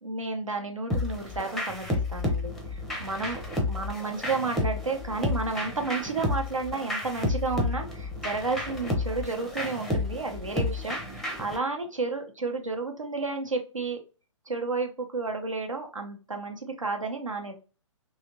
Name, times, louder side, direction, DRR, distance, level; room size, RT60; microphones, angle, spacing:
voice 1, 0.0-3.4 3.7-14.0 14.5-17.5, right 3 dB, 90° right, 3 dB, 0.9 m, -32 dB
sound 1, 0.9-11.6, left 2 dB, ahead, 0.5 m, -31 dB
3.2 x 2.8 x 2.7 m, 0.34 s
figure-of-eight pair, 130°, 16 cm